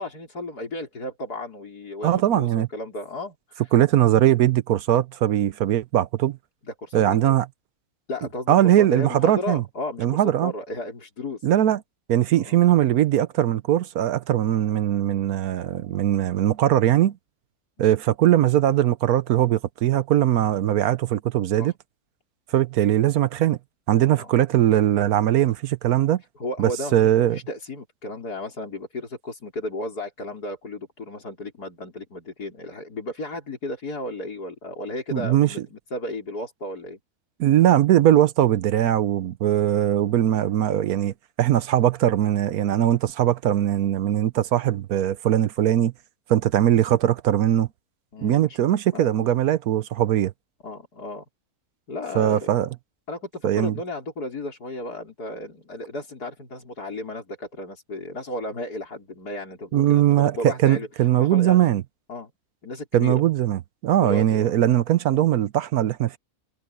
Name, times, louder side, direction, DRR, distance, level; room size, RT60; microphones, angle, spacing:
voice 1, 0.0-3.7 6.6-7.2 8.1-11.5 12.3-12.6 17.8-18.0 21.6-21.7 24.2-24.3 26.4-37.0 48.1-49.3 50.6-51.3 51.9-52.5 53.1-61.6 62.1-62.3 62.6-63.2 64.0-64.5, left 2 dB, 90° left, 5.2 m, -34 dB
voice 2, 2.0-2.7 3.7-6.4 6.9-7.4 8.5-9.6 10.0-10.5 11.4-11.8 12.1-17.2 17.8-21.7 22.5-23.6 23.9-26.2 26.6-27.4 35.1-35.5 37.4-41.1 41.4-45.9 46.3-47.7 48.2-50.3 52.1-52.7 53.4-53.8 59.7-61.8 62.9-66.2, right 12 dB, 75° right, 1.2 m, -20 dB
omnidirectional pair, 1.6 m